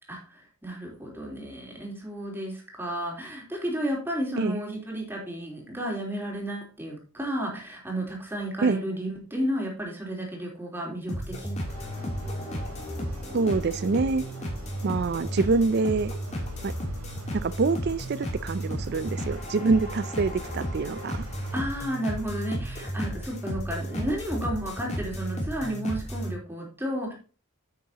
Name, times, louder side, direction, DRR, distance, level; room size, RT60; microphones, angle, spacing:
voice 1, 0.1-11.7 21.5-27.1, equal, 10° right, 3.6 m, -32 dB
sound 1, 11.1-26.3, equal, 30° left, 3.1 m, -33 dB
sound 2, 11.6-21.7, equal, 85° right, 2.5 m, -44 dB
voice 2, 13.3-14.2 14.8-16.1 16.6-16.7 17.3-21.3, right 4 dB, 50° right, 0.4 m, -25 dB
9.4 x 8.6 x 2.9 m
head